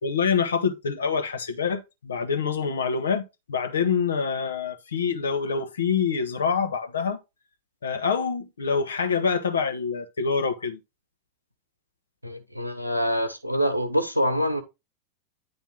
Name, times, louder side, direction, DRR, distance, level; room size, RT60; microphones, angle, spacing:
voice 1, 0.0-7.2 7.8-10.8, left 6 dB, 70° left, 1.2 m, -26 dB
voice 2, 12.2-14.6, equal, 90° right, 1.2 m, -25 dB
9.8 x 3.3 x 4.6 m
figure-of-eight pair, 90°, 0 cm